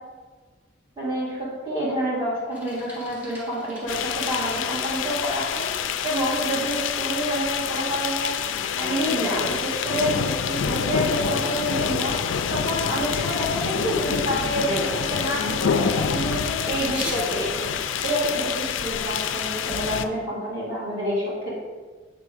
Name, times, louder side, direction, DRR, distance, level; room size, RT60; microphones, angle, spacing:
voice 1, 1.0-17.7 18.0-21.5, equal, 25° right, -9 dB, 2.0 m, -28 dB
Bicycle, 2.5-19.0, equal, 10° right, 1.1 m, -41 dB
sound 1, 3.9-20.0, left 7 dB, 75° left, 0.3 m, -27 dB
7.0 x 3.6 x 4.8 m, 1.4 s
head